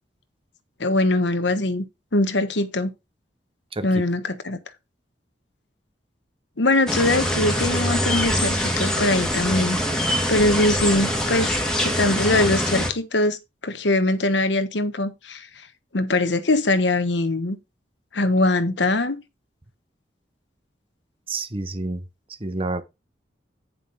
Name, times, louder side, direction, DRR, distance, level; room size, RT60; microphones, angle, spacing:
voice 1, 0.8-1.8 2.1-2.9 3.8-4.6 6.6-9.8 10.3-13.4 13.6-15.5 15.9-17.6 18.1-19.2, left 2 dB, 75° left, 1.2 m, -22 dB
sound 1, 6.9-12.9, equal, 5° left, 2.1 m, -24 dB
voice 2, 21.3-22.0 22.4-22.8, right 2 dB, 30° right, 1.0 m, -28 dB
9.6 x 5.4 x 4.1 m
head